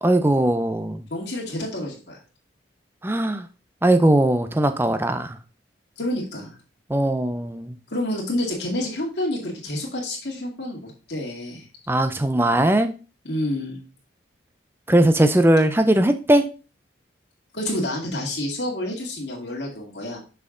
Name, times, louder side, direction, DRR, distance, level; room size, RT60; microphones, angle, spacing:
voice 1, 0.0-1.0 3.0-3.5 3.8-5.4 6.9-7.8 11.9-12.9 14.9-16.4, right 1 dB, 10° right, 0.5 m, -19 dB
voice 2, 1.1-2.2 6.0-6.6 7.9-11.7 13.2-13.8 17.5-20.2, left 1 dB, 60° left, 2.1 m, -28 dB
6.1 x 5.7 x 3.8 m
head